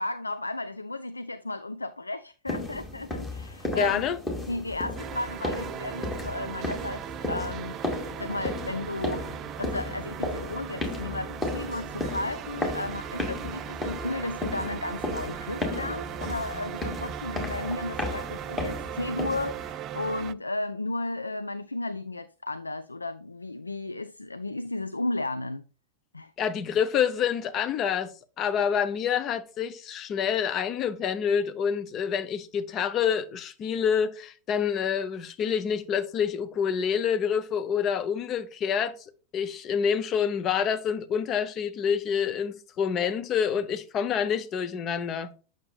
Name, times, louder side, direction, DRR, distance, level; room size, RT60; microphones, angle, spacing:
voice 1, 0.0-4.1 4.5-9.3 9.6-25.6 26.1-26.3, left 2 dB, 80° left, 0.4 m, -34 dB
sound 1, 2.5-19.7, left 2 dB, 15° left, 2.0 m, -35 dB
voice 2, 3.8-4.2 26.4-38.9 39.3-45.3, left 7 dB, 30° left, 0.7 m, -27 dB
sound 2, 5.0-20.3, right 11 dB, 35° right, 0.3 m, -38 dB
8.6 x 6.5 x 2.3 m
figure-of-eight pair, 90°, 0 cm